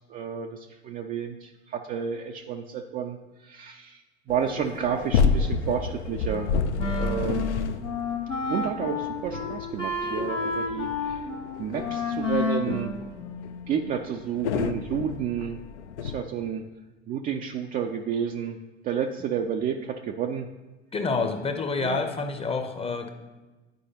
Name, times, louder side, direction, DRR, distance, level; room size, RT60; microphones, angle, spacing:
voice 1, 0.1-4.0 4.3-6.5 6.9-7.5 8.5-11.3 11.6-12.9 13.7-15.6 16.0-16.6 17.1-18.6 18.8-20.5 21.8-22.0, right 8 dB, 25° right, 3 dB, 0.4 m, -31 dB
sound 1, 4.3-16.2, left 5 dB, 70° left, 0.5 m, -30 dB
Wind instrument woodwind instrument, 6.3-13.8, left 3 dB, 90° left, 1.1 m, -31 dB
voice 2, 20.9-23.1, left 4 dB, 15° left, 6 dB, 0.7 m, -28 dB
10.5 x 4.7 x 2.8 m, 1.2 s
figure-of-eight pair, 75°, 36 cm